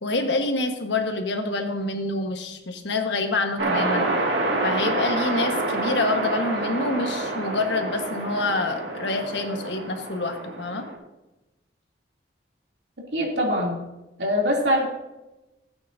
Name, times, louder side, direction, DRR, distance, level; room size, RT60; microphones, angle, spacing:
voice 1, 0.0-4.1 4.6-10.8, left 2 dB, 80° left, 4 dB, 1.4 m, -27 dB
sound 1, 3.6-10.9, right 2 dB, 90° right, 2.1 m, -27 dB
voice 2, 13.1-13.8 14.2-14.8, equal, 75° right, -1 dB, 2.9 m, -23 dB
16.5 x 8.7 x 2.7 m, 1.0 s
head